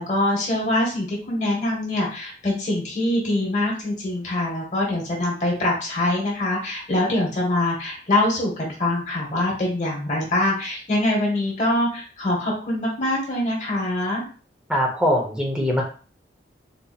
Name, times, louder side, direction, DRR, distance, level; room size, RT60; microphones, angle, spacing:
voice 1, 0.0-14.2, left 1 dB, 40° left, -2 dB, 1.0 m, -24 dB
voice 2, 14.7-15.8, equal, 5° right, -1 dB, 0.7 m, -22 dB
4.0 x 2.7 x 2.3 m, 0.38 s
head